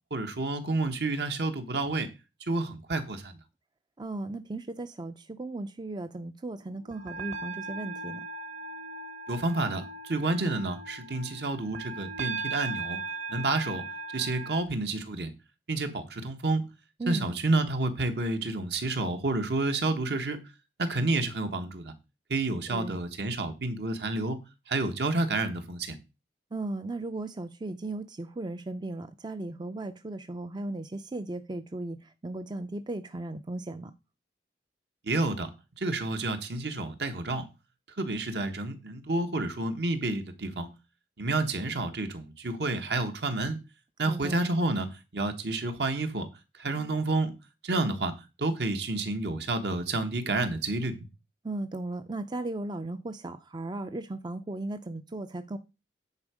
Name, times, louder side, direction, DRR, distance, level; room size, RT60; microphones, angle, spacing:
voice 1, 0.1-2.1 2.5-3.3 9.3-13.0 13.3-13.8 14.1-15.3 15.7-16.6 17.1-20.4 20.8-21.9 22.3-24.4 24.7-26.0 35.0-35.5 35.8-37.4 38.0-40.7 41.2-43.6 44.0-46.3 46.6-47.3 47.6-48.1 48.4-51.0, right 2 dB, 65° right, 1.2 m, -29 dB
voice 2, 4.0-8.2 17.0-17.3 22.7-23.0 26.5-33.9 44.1-44.3 51.4-55.6, right 2 dB, 25° right, 0.4 m, -36 dB
sound 1, 6.8-14.6, right 4 dB, 40° right, 1.1 m, -38 dB
9.7 x 4.5 x 4.9 m
head